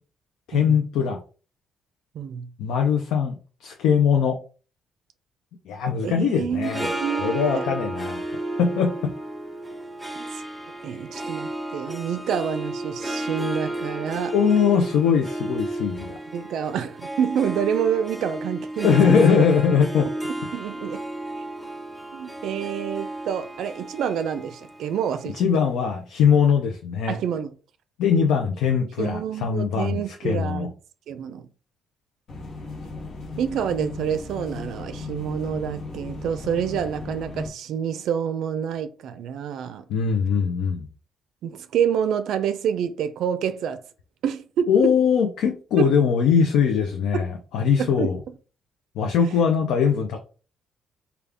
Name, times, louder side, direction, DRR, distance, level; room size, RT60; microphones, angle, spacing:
voice 1, 0.5-1.2 2.6-4.4 5.7-6.9 7.2-8.2 8.6-9.1 14.3-16.2 18.8-20.1 25.3-27.2 28.0-30.7 39.9-40.9 44.7-48.2 49.0-50.2, left 6 dB, 90° left, 0.5 m, -21 dB
voice 2, 2.1-2.5 6.0-7.7 10.2-10.3 10.8-14.3 16.3-18.9 20.5-21.0 22.1-25.4 27.1-27.5 29.0-30.7 31.1-31.5 33.4-39.8 41.4-43.8 44.2-45.0 45.8-45.9 47.1-47.3 47.8-48.1, right 8 dB, 80° right, 0.4 m, -28 dB
Harp, 6.5-25.9, right 1 dB, ahead, 0.7 m, -33 dB
sound 1, 32.3-37.5, left 3 dB, 70° left, 1.0 m, -36 dB
3.6 x 2.3 x 3.3 m
cardioid pair, 90°, 0 cm